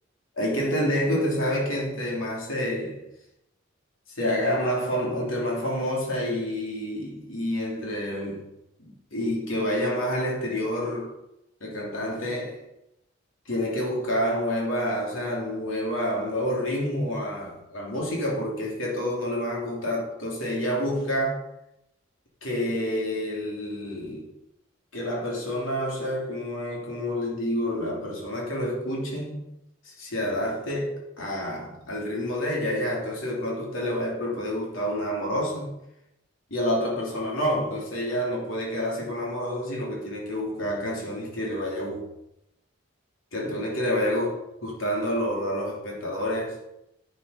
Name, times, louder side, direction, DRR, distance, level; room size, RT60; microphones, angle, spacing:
voice 1, 0.4-3.0 4.2-8.5 8.9-11.1 11.6-12.6 13.4-21.4 22.4-24.3 24.9-29.4 29.8-35.7 36.5-42.1 43.3-46.6, equal, 85° left, 3.2 m, -28 dB
11.0 x 7.6 x 5.2 m
head